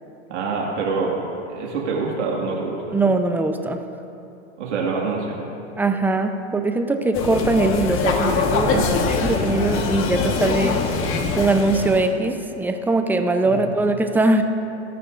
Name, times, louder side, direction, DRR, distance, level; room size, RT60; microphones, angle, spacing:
voice 1, 0.3-1.2 1.5-3.0 4.6-5.4 8.7-9.1 13.4-13.8, right 4 dB, 85° right, -3 dB, 2.0 m, -26 dB
voice 2, 2.9-3.8 5.8-8.8 9.1-10.8 11.4-14.4, right 2 dB, 5° right, 6 dB, 0.6 m, -21 dB
sound 1, 7.1-12.1, left 4 dB, 35° left, 1.4 m, -23 dB
18.0 x 13.0 x 2.5 m, 2.8 s
hypercardioid pair, 115°, 35 cm